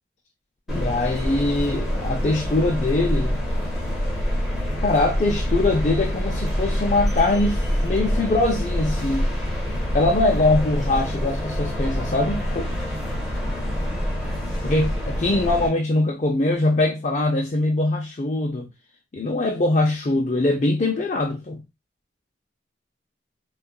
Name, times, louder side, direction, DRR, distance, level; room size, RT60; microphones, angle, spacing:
voice 1, 0.7-3.4 4.8-9.3 9.9-12.7 14.6-18.7 19.1-21.6, left 2 dB, 40° left, 0.4 m, -22 dB
sound 1, 0.7-15.7, equal, ahead, 1.1 m, -26 dB
3.6 x 2.3 x 2.2 m
head